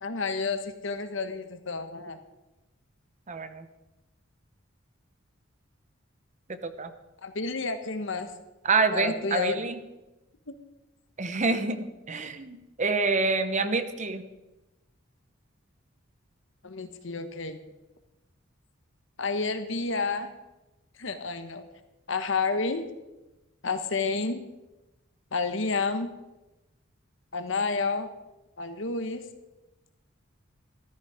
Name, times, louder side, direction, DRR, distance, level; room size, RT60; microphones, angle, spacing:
voice 1, 0.0-2.2 7.2-8.3 8.9-9.6 10.5-10.6 16.6-17.6 19.2-20.3 21.0-21.6 22.1-22.8 23.6-24.5 25.3-26.2 27.3-28.1 28.6-29.2, left 4 dB, 70° left, 9 dB, 1.3 m, -30 dB
voice 2, 3.3-3.7 6.6-6.9 8.6-9.8 11.2-14.2, right 3 dB, 40° right, 10 dB, 1.0 m, -27 dB
14.0 x 13.0 x 5.0 m, 1.0 s
head